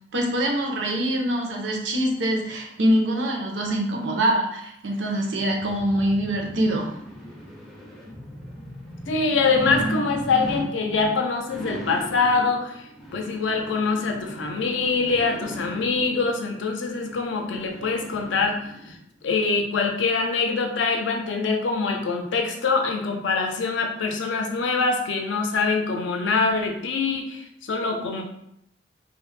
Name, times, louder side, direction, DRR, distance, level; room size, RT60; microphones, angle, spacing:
voice 1, 0.1-7.0, right 1 dB, 80° right, 1 dB, 0.5 m, -24 dB
sound 1, 5.0-18.9 19.4-19.5, right 1 dB, ahead, 0.4 m, -37 dB
voice 2, 9.1-12.8 13.1-18.6 18.9-19.0 19.2-28.2, left 4 dB, 85° left, 3 dB, 0.4 m, -24 dB
2.2 x 2.0 x 3.1 m, 0.76 s
head